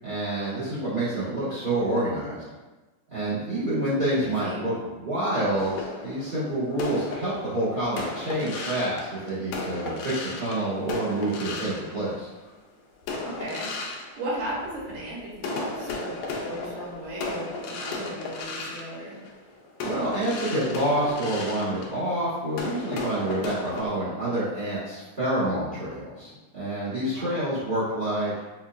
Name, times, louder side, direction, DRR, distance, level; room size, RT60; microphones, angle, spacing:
voice 1, 0.0-2.5 3.1-12.3 19.8-28.4, right 1 dB, 50° right, -12 dB, 0.5 m, -28 dB
voice 2, 4.1-4.6 13.2-19.2 27.1-27.5, right 1 dB, 80° right, -6 dB, 2.4 m, -36 dB
sound 1, 5.6-12.5 13.0-15.0 15.4-23.9, left 3 dB, 80° left, 1.9 m, -35 dB
5.8 x 2.3 x 2.5 m, 1.2 s
omnidirectional pair, 3.4 m